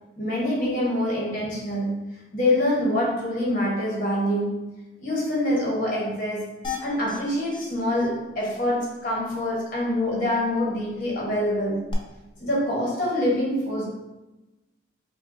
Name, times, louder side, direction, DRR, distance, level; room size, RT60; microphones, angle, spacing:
voice 1, 0.2-4.7 5.0-6.5 6.8-11.9 12.4-13.9, left 1 dB, 45° left, -5 dB, 1.4 m, -25 dB
sound 1, 6.6-7.2 7.5-7.6 8.0-8.1 8.4-8.5 11.9-12.0, left 6 dB, 25° left, 0.5 m, -34 dB
5.2 x 2.4 x 2.9 m, 1.0 s
head